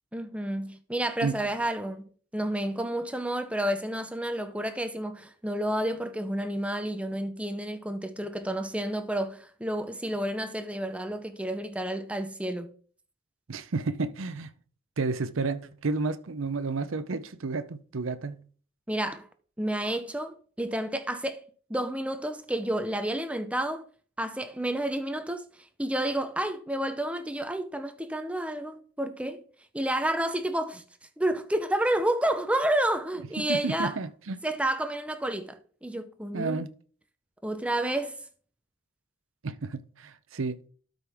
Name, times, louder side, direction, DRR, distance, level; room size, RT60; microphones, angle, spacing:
voice 1, 0.1-12.7 18.9-19.3 19.6-21.4 21.7-23.8 24.2-25.4 25.8-29.4 29.7-30.8 31.2-33.9 34.4-36.6 37.4-38.2, right 1 dB, 5° right, 0.6 m, -30 dB
voice 2, 13.5-14.5 15.0-18.4 33.4-34.4 36.3-36.7 39.4-40.6, right 3 dB, 85° right, 0.7 m, -31 dB
12.5 x 5.3 x 3.5 m
head